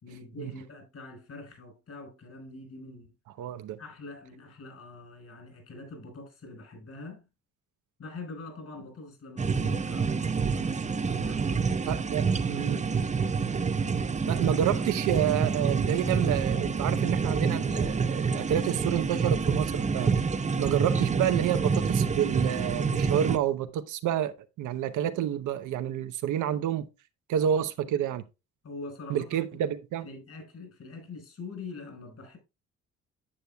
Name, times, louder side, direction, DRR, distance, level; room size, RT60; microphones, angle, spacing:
voice 1, 0.0-3.1 3.8-7.3 8.0-12.8 27.8-28.0 28.6-29.5 30.0-32.4, left 3 dB, 55° left, 4.9 m, -44 dB
voice 2, 3.4-3.8 11.9-12.8 14.3-20.1 20.6-26.9 27.3-28.2 29.1-30.1, right 10 dB, 80° right, 0.8 m, -29 dB
sound 1, 9.4-23.4, right 5 dB, 25° right, 0.7 m, -27 dB
10.0 x 7.9 x 2.3 m
cardioid pair, 90°, 30 cm